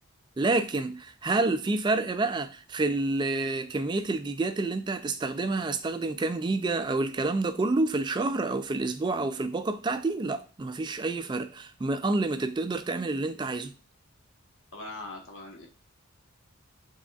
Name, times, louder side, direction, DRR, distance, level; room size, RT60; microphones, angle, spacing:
voice 1, 0.4-13.7, right 3 dB, 20° right, 0.3 m, -28 dB
voice 2, 14.7-15.7, left 2 dB, 60° left, 1.1 m, -41 dB
5.9 x 3.6 x 2.3 m
head